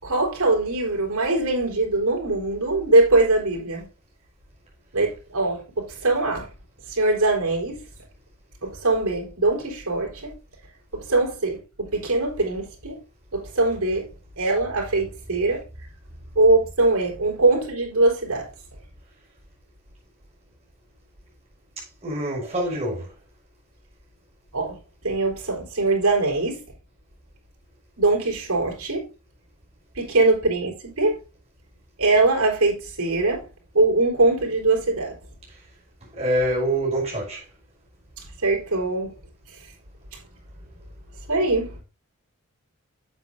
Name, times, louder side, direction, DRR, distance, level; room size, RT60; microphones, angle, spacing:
voice 1, 0.0-3.9 4.9-6.5 6.9-7.8 8.6-10.3 10.9-13.0 13.3-14.0 14.4-15.6 16.3-18.5 24.5-24.8 25.0-26.6 28.0-29.1 29.9-31.2 32.0-33.5 33.7-35.1 38.4-39.1 41.3-41.8, right 2 dB, 85° right, 4.6 m, -22 dB
voice 2, 22.0-23.1 36.2-37.4, right 1 dB, 30° right, 5.8 m, -25 dB
9.3 x 8.4 x 2.7 m
head